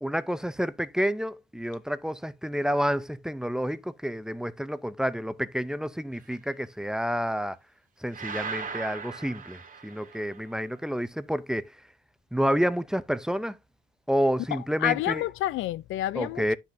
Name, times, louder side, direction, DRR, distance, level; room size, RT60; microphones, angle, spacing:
voice 1, 0.0-7.6 8.0-11.7 12.3-13.6 14.1-15.2 16.1-16.6, equal, 5° right, 0.6 m, -29 dB
sound 1, 8.1-10.4, right 5 dB, 45° right, 1.7 m, -38 dB
voice 2, 14.5-16.5, left 15 dB, 80° left, 0.4 m, -29 dB
9.9 x 6.0 x 2.6 m
cardioid pair, 90°, 20 cm